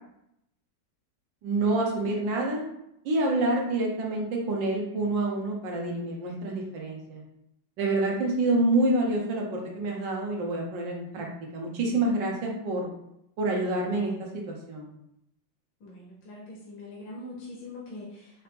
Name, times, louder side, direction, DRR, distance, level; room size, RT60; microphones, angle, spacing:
voice 1, 1.4-2.6 3.0-7.2 7.8-11.3 11.5-12.9 13.4-14.9, right 2 dB, 80° right, -1 dB, 1.6 m, -27 dB
voice 2, 15.8-18.4, left 2 dB, 80° left, -5 dB, 1.5 m, -43 dB
4.5 x 2.9 x 3.4 m, 0.80 s
omnidirectional pair, 2.0 m